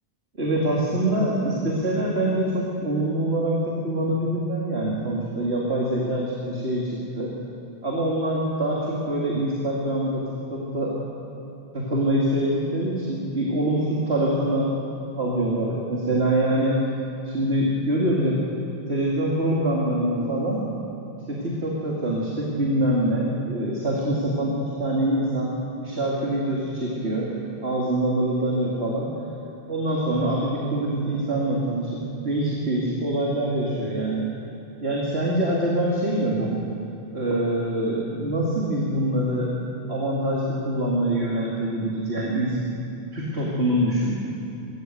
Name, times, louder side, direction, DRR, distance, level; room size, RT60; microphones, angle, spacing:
voice 1, 0.4-7.3 7.8-11.0 11.7-14.7 15.2-16.8 17.2-18.4 18.9-20.7 21.3-27.3 27.6-29.1 29.7-34.3 34.8-36.6 37.1-42.8 43.1-44.1, right 1 dB, 85° right, -5 dB, 3.1 m, -24 dB
28.0 x 14.5 x 8.0 m, 3.0 s
omnidirectional pair, 1.0 m